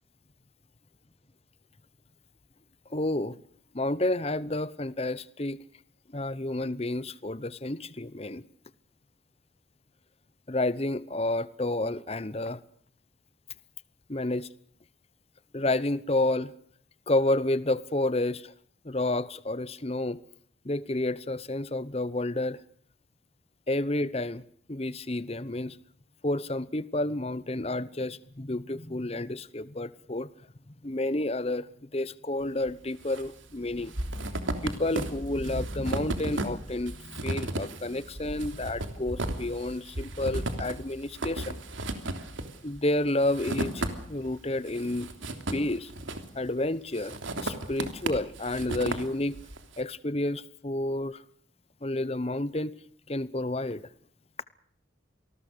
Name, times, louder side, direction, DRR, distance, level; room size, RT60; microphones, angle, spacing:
voice 1, 2.9-3.4 3.7-5.6 6.1-8.4 10.5-12.6 14.1-14.5 15.5-16.5 17.1-18.5 18.8-20.2 20.6-22.6 23.7-24.4 24.7-25.8 26.2-30.3 30.8-34.3 34.6-41.6 42.6-45.1 45.5-45.9 46.3-49.4 49.8-51.2 51.8-52.7 53.1-53.8, left 2 dB, 30° left, 0.9 m, -30 dB
sound 1, 32.7-33.3 33.5-44.3 44.7-46.5 46.9-49.6, right 1 dB, 85° right, 3.2 m, -34 dB
27.5 x 19.5 x 6.8 m
head